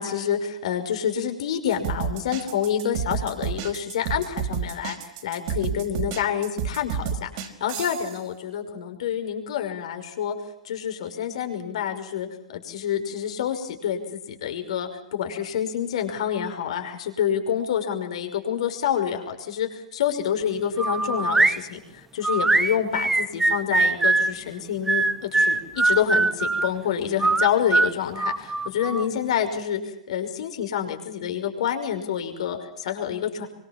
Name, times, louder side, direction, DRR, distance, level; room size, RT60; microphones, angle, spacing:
voice 1, 0.0-5.0 5.2-10.4 10.6-33.5, left 9 dB, 65° left, 5 dB, 5.7 m, -28 dB
sound 1, 1.7-8.2, right 7 dB, 50° right, 4.8 m, -30 dB
sound 2, 20.8-21.6 22.2-24.3 24.9-26.7 27.2-29.1, right 3 dB, 10° right, 1.2 m, -22 dB
26.5 x 24.0 x 7.5 m, 0.83 s
hypercardioid pair, 105°, 4 cm